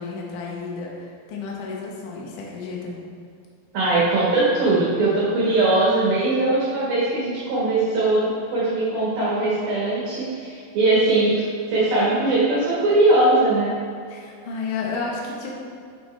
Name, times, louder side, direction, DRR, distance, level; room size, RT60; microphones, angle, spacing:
voice 1, 0.0-3.0 14.1-15.5, left 4 dB, 75° left, -3 dB, 1.8 m, -32 dB
voice 2, 3.7-11.4 11.7-13.7, right 2 dB, 60° right, -8 dB, 2.9 m, -20 dB
9.0 x 7.4 x 3.3 m, 2.3 s
omnidirectional pair, 5.6 m